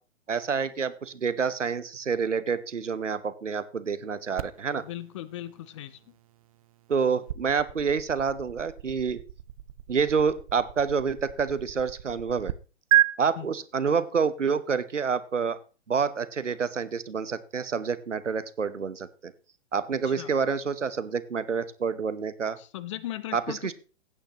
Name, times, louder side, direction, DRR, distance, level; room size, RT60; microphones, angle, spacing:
voice 1, 0.3-4.8 6.9-9.2 9.9-12.5 13.2-15.6 15.9-19.3 19.7-22.6 23.3-23.7, right 6 dB, 80° right, 1.0 m, -28 dB
sound 1, 4.4-12.5 12.9-13.1, right 14 dB, 30° right, 0.4 m, -32 dB
voice 2, 4.8-6.0 13.4-13.5 20.0-20.3 22.6-23.7, left 13 dB, 25° left, 0.5 m, -38 dB
16.0 x 8.9 x 2.9 m
figure-of-eight pair, 115°, 36 cm